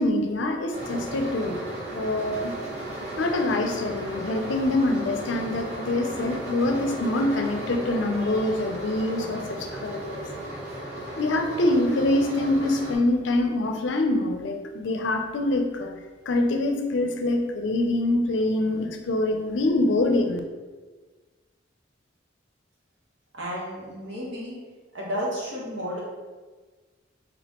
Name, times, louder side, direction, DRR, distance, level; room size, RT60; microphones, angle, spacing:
voice 1, 0.0-1.6 1.9-2.5 3.2-10.2 11.2-15.9 16.3-20.4, left 2 dB, 75° left, 4 dB, 0.5 m, -25 dB
sound 1, 0.7-12.9, right 1 dB, 40° right, 1.2 m, -35 dB
voice 2, 23.3-24.6 24.9-26.0, equal, 70° right, -5 dB, 1.3 m, -32 dB
4.1 x 3.4 x 2.9 m, 1.3 s
head